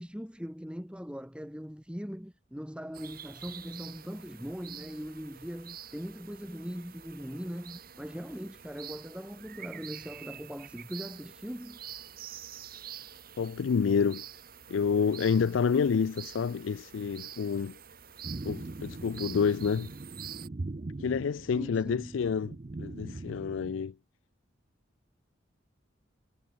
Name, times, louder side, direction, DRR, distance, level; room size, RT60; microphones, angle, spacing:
voice 1, 0.0-11.8 21.5-22.3, equal, 5° right, 3.0 m, -40 dB
sound 1, 2.9-20.5, right 9 dB, 50° right, 4.2 m, -47 dB
voice 2, 13.4-14.3 14.7-17.8 18.4-19.9 21.0-23.9, left 6 dB, 85° left, 0.4 m, -28 dB
sound 2, 18.2-23.7, right 2 dB, 35° right, 0.5 m, -41 dB
head